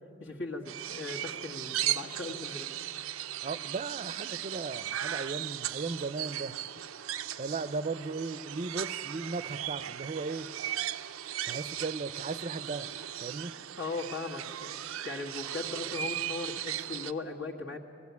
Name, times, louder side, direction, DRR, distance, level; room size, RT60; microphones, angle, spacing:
voice 1, 0.2-2.7 13.8-17.8, left 3 dB, 70° left, 1.8 m, -38 dB
sound 1, 0.7-17.1, right 11 dB, 90° right, 0.5 m, -37 dB
voice 2, 3.4-6.6 7.4-10.5 11.5-12.9 13.2-13.5, right 3 dB, 35° right, 0.5 m, -36 dB
20.0 x 15.0 x 9.5 m
head